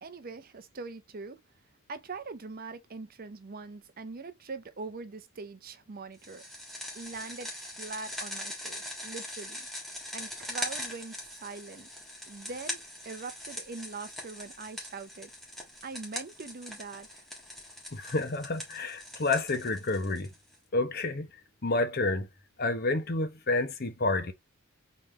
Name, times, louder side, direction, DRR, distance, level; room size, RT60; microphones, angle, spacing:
voice 1, 0.0-1.4 1.9-6.4 6.9-9.7 10.1-11.9 12.3-15.3 15.8-17.2, right 4 dB, 45° right, 0.6 m, -42 dB
sound 1, 6.2-20.5, left 1 dB, ahead, 1.7 m, -41 dB
voice 2, 17.9-20.3 20.7-21.3 21.6-22.3 22.6-24.3, left 2 dB, 45° left, 0.8 m, -29 dB
4.1 x 3.6 x 3.2 m
head